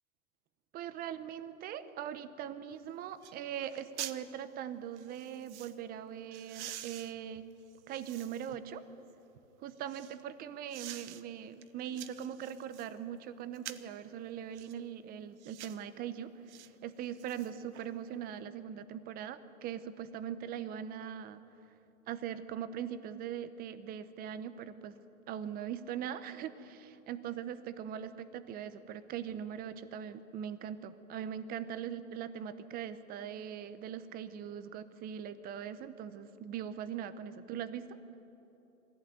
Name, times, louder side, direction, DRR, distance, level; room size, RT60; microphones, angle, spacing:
voice 1, 0.7-7.4 7.9-8.8 9.6-21.4 22.1-25.0 25.3-38.0, right 9 dB, 20° right, 12 dB, 0.9 m, -41 dB
Shovel Dirt, 2.7-2.8 3.2-3.4 3.6-4.2 5.0-5.8 6.3-8.6 9.1-10.2 10.7-11.2 11.6-12.9 13.5-14.0 14.5-14.8 15.4-15.8 16.5-16.7 17.0-17.9 18.2-18.3, right 12 dB, 55° right, 1.1 m, -47 dB
22.5 x 15.5 x 9.4 m, 3.0 s
hypercardioid pair, 140°, 41 cm